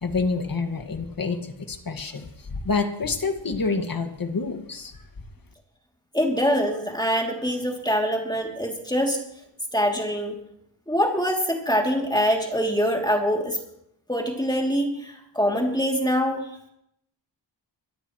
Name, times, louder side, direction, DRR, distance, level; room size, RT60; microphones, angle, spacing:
voice 1, 0.0-5.0, left 4 dB, 50° left, 6 dB, 2.0 m, -28 dB
voice 2, 6.1-9.2 9.7-10.4 10.9-13.6 14.1-16.5, equal, 10° left, 0 dB, 2.9 m, -24 dB
23.5 x 13.5 x 3.2 m, 0.76 s
cardioid pair, 60°, 45 cm